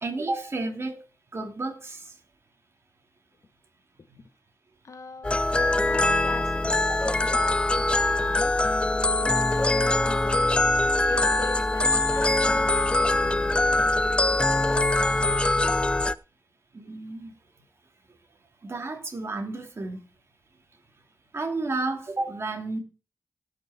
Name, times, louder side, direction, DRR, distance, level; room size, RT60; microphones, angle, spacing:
voice 1, 0.0-1.0 1.3-2.0 6.9-7.0 16.7-17.3 18.6-20.0 21.3-22.8, right 2 dB, 45° right, 3 dB, 3.0 m, -31 dB
voice 2, 4.8-6.6 7.0-7.8 8.3-8.5 9.1-10.5 11.1-13.7, left 4 dB, 60° left, 10 dB, 1.5 m, -41 dB
sound 1, 5.2-16.1, left 2 dB, 15° left, 0.4 m, -23 dB
17.5 x 6.1 x 4.4 m, 0.33 s
wide cardioid pair, 80°, 6 cm